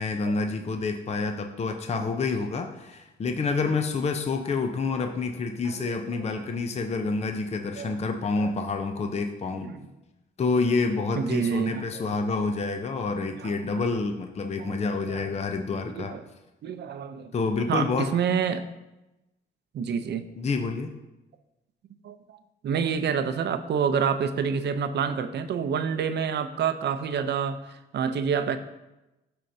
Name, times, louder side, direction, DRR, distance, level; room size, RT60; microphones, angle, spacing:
voice 1, 0.0-9.7 10.4-16.1 17.3-18.1 20.4-20.9, left 4 dB, 35° left, 6 dB, 0.6 m, -28 dB
voice 2, 5.6-6.4 7.8-7.9 9.5-9.9 11.2-12.1 13.3-13.8 14.6-15.3 16.0-16.2 16.6-17.3 17.7-18.7 19.7-20.3 22.0-22.4 22.6-28.6, right 7 dB, 60° right, 10 dB, 0.6 m, -28 dB
12.5 x 4.3 x 2.7 m, 0.99 s
cardioid pair, 90°, 20 cm